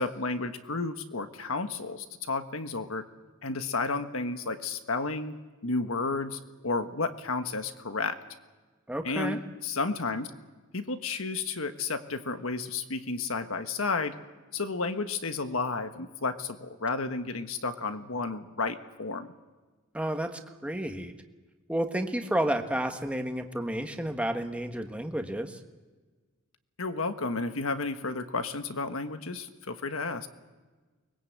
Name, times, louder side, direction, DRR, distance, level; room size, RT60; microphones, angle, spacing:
voice 1, 0.0-3.1 3.4-5.4 5.6-8.2 9.0-10.3 10.7-14.1 14.5-19.3 26.8-30.3, left 3 dB, 85° left, 8 dB, 1.4 m, -32 dB
voice 2, 8.9-9.4 19.9-21.1 21.7-25.6, right 1 dB, 5° right, 5 dB, 1.4 m, -31 dB
23.5 x 20.5 x 8.1 m, 1.3 s
head